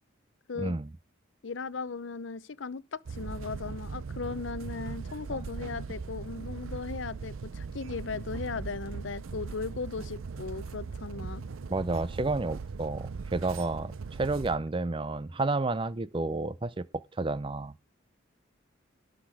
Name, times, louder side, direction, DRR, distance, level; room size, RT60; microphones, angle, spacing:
voice 1, 0.6-0.9 5.3-5.5 11.7-17.7, right 3 dB, 25° right, 0.5 m, -31 dB
voice 2, 1.4-11.4, left 4 dB, 65° left, 0.7 m, -37 dB
sound 1, 3.1-14.6, right 5 dB, 85° right, 0.5 m, -40 dB
sound 2, 3.2-4.7 5.9-7.2 8.4-9.2 9.6-11.9 12.2-12.9, right 2 dB, 50° right, 1.0 m, -48 dB
18.0 x 6.1 x 4.8 m
head